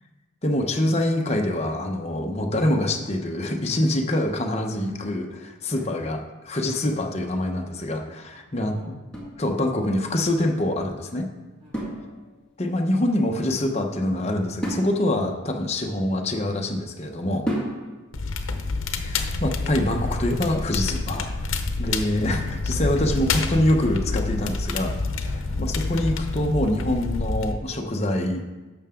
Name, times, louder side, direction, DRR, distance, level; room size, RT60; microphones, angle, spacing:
voice 1, 0.4-8.7 9.4-11.3 12.6-17.5 19.0-21.3 21.8-24.9 25.6-28.4, left 1 dB, 35° left, 3 dB, 0.9 m, -25 dB
voice 2, 8.3-8.9 11.6-12.2 17.7-18.1 25.2-25.5, equal, 30° right, -8 dB, 3.1 m, -50 dB
sound 1, 9.1-10.1 11.7-12.6 14.6-16.6 17.5-18.2, right 1 dB, 5° left, 1.9 m, -33 dB
Crackle, 18.1-27.5, left 3 dB, 90° left, 0.8 m, -28 dB
11.5 x 6.9 x 3.7 m, 1.2 s
head